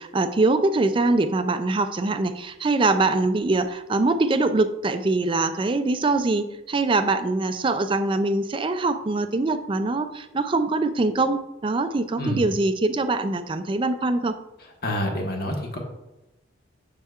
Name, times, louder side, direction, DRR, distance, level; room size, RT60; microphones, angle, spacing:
voice 1, 0.0-14.3, right 2 dB, 25° right, 10 dB, 0.4 m, -23 dB
voice 2, 14.8-15.8, left 1 dB, 50° left, 1 dB, 1.2 m, -27 dB
7.1 x 6.8 x 2.4 m, 0.96 s
head